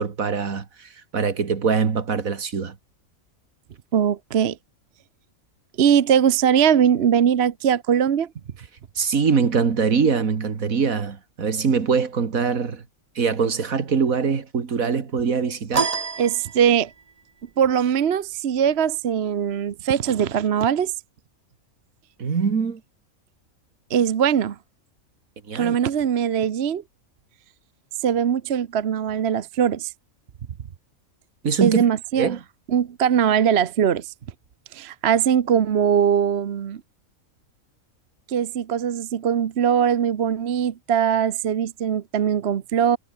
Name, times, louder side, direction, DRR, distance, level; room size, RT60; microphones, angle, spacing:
voice 1, 0.0-2.7 9.0-12.8 13.2-15.9 22.2-22.8 25.5-25.8 31.4-31.9 32.2-32.4, right 5 dB, 75° right, 2.3 m, -23 dB
voice 2, 3.9-4.6 5.8-8.3 16.2-16.9 17.6-20.9 23.9-24.6 25.5-26.8 28.0-29.9 31.6-32.4 32.7-34.1 34.7-36.8 38.3-43.0, right 8 dB, 50° right, 1.0 m, -21 dB
sound 1, 15.7-17.1, right 5 dB, 30° right, 0.9 m, -27 dB
omnidirectional pair, 1.5 m